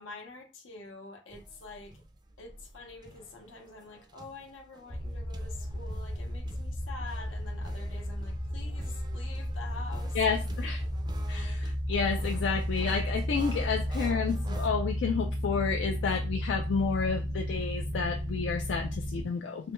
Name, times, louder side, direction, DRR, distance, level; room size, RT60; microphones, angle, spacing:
voice 1, 0.0-2.0 2.4-10.2 11.4-11.5, left 3 dB, 80° left, 0.8 m, -47 dB
sound 1, 1.3-14.7, right 2 dB, 20° right, 0.4 m, -50 dB
sound 2, 4.9-19.2, equal, 45° left, 0.8 m, -33 dB
voice 2, 10.1-10.8 11.3-19.7, left 5 dB, 65° left, 0.3 m, -30 dB
3.3 x 2.1 x 3.0 m
head